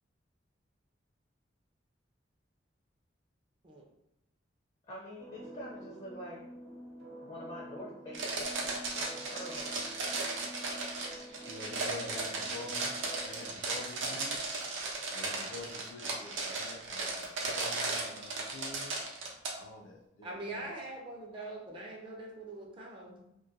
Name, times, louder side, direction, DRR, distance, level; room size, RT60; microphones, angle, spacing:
voice 1, 4.9-6.4 7.2-9.8, equal, 35° left, -5 dB, 0.5 m, -45 dB
sound 1, 5.2-13.5, right 1 dB, 60° right, 0.8 m, -49 dB
sound 2, 8.1-19.5, right 3 dB, 90° right, 0.5 m, -36 dB
voice 2, 11.5-18.9 19.5-20.9, left 2 dB, 85° left, 2 dB, 0.5 m, -47 dB
voice 3, 20.2-23.2, right 2 dB, 25° right, -2 dB, 0.4 m, -43 dB
2.2 x 2.2 x 2.7 m, 0.86 s
head